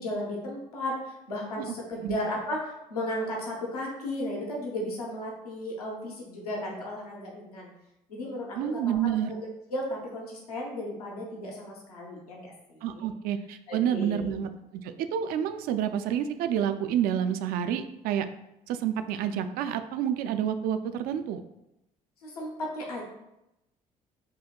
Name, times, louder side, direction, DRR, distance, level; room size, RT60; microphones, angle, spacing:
voice 1, 0.0-7.7 8.1-9.4 9.7-13.1 13.7-14.3 22.2-23.0, left 1 dB, 80° left, -2 dB, 0.8 m, -35 dB
voice 2, 8.6-9.3 12.8-18.3 18.7-21.4, right 9 dB, 50° right, 9 dB, 0.4 m, -29 dB
6.7 x 2.8 x 2.2 m, 0.89 s
figure-of-eight pair, 50°, 19 cm